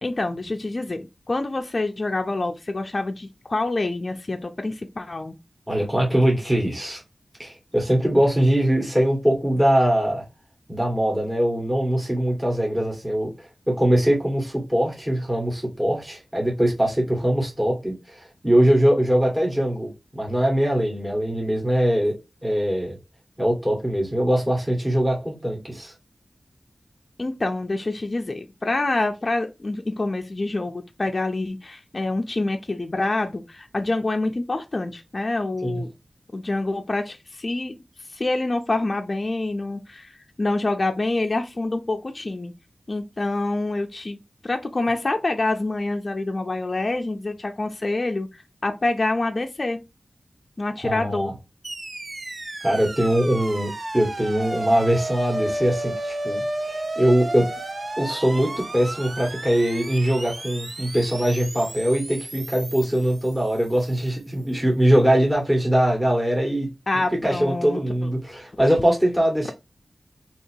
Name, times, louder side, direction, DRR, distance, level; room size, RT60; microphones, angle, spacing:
voice 1, 0.0-5.3 27.2-35.9 36.3-37.8 38.1-42.5 42.9-49.8 50.6-51.3 66.9-67.8, left 2 dB, 45° left, 0.5 m, -26 dB
voice 2, 5.7-7.0 7.4-10.2 10.7-22.1 22.4-22.9 23.4-25.9 35.6-35.8 50.8-51.3 52.6-57.5 58.0-66.7 66.9-69.5, right 1 dB, 15° right, 1.5 m, -22 dB
sound 1, 51.6-63.9, right 1 dB, 50° right, 0.6 m, -33 dB
2.9 x 2.8 x 4.4 m
wide cardioid pair, 60°, 0 cm